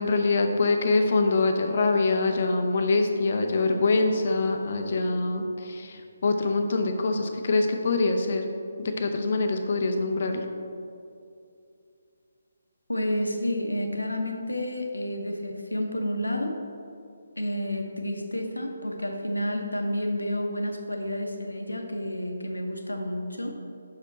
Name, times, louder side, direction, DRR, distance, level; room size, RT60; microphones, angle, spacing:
voice 1, 0.0-8.5 8.8-10.5, left 3 dB, 45° left, 5 dB, 0.6 m, -24 dB
voice 2, 12.9-16.5 17.4-23.5, left 1 dB, 85° left, 3 dB, 0.8 m, -30 dB
6.1 x 5.1 x 4.2 m, 2.5 s
figure-of-eight pair, 145°, 0 cm